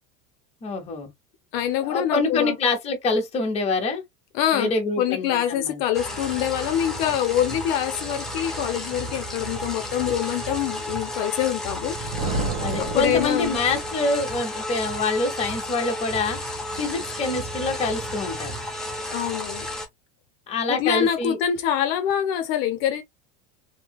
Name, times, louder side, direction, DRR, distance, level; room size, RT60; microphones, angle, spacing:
voice 1, 0.6-1.1 1.8-4.0 4.5-5.8 12.6-16.4 16.7-18.5 20.5-21.4, left 3 dB, 15° left, 0.9 m, -26 dB
voice 2, 1.5-2.6 4.3-4.7 5.0-11.9 12.8-13.6 19.1-19.7 20.7-23.0, left 10 dB, 55° left, 0.7 m, -25 dB
sound 1, 5.9-19.9, left 1 dB, ahead, 0.5 m, -32 dB
Thunder, 11.7-14.1, right 2 dB, 80° right, 1.1 m, -31 dB
3.2 x 2.8 x 2.2 m
cardioid pair, 170°, 36 cm